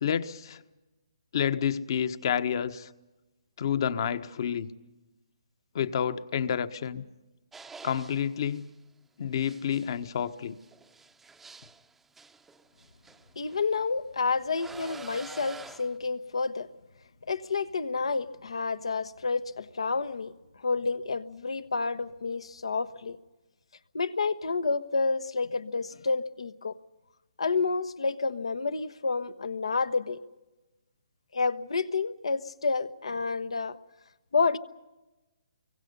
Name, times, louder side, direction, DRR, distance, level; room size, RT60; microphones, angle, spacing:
voice 1, 0.0-0.6 1.3-2.9 3.6-4.7 5.7-7.0 7.8-8.7 9.2-10.6, left 8 dB, 55° left, 1.3 m, -29 dB
sound 1, 7.5-8.7 9.4-13.6 14.5-16.0, right 4 dB, 5° right, 0.7 m, -48 dB
voice 2, 13.4-16.7 17.3-20.3 20.6-23.2 23.9-26.8 27.4-30.2 31.3-33.8 34.3-34.6, left 4 dB, 80° left, 1.2 m, -29 dB
30.0 x 24.0 x 5.5 m
hypercardioid pair, 150°, 3 cm